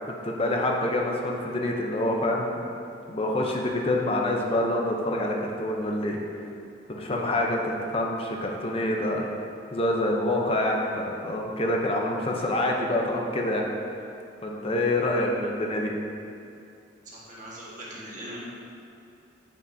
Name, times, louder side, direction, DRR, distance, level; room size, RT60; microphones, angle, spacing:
voice 1, 0.2-2.6 3.1-6.2 6.9-9.2 9.7-13.6 14.4-15.9, left 1 dB, 30° left, 0 dB, 0.7 m, -26 dB
voice 2, 17.1-18.4, right 1 dB, 45° right, -6 dB, 1.6 m, -40 dB
9.2 x 5.4 x 2.7 m, 2.5 s
head